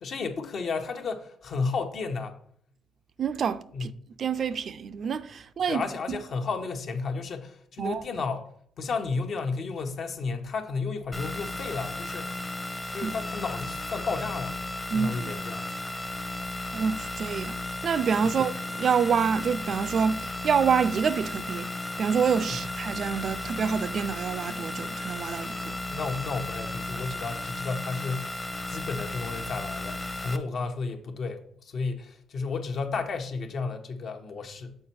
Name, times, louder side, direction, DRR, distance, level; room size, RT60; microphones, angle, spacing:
voice 1, 0.0-2.4 3.7-3.9 5.7-8.4 8.8-12.3 12.9-14.6 14.9-15.7 18.2-18.4 22.5-22.6 25.9-28.3 28.7-34.8, left 4 dB, 60° left, 0.9 m, -32 dB
voice 2, 3.2-3.9 4.2-5.8 6.1-6.2 7.8-8.0 13.0-13.1 14.9-15.3 16.7-17.6 17.8-21.7 22.0-25.8, right 6 dB, 55° right, 0.4 m, -27 dB
sound 1, 11.1-30.4, left 2 dB, 15° left, 0.7 m, -35 dB
6.6 x 4.5 x 4.3 m
cardioid pair, 90°, 0 cm